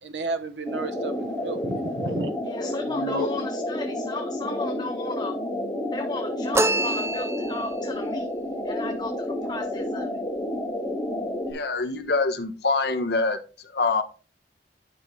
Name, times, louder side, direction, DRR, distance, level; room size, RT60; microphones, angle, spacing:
voice 1, 0.0-2.3, right 3 dB, 75° right, 1.1 m, -32 dB
sound 1, 0.7-11.5, left 1 dB, 5° left, 2.5 m, -30 dB
voice 2, 2.5-5.4 5.9-8.3 8.6-10.1, left 3 dB, 25° left, 0.7 m, -35 dB
sound 2, 6.5-7.8, right 2 dB, 15° right, 0.4 m, -25 dB
voice 3, 11.5-13.4 13.7-14.0, left 3 dB, 65° left, 1.2 m, -25 dB
9.6 x 5.4 x 3.2 m
head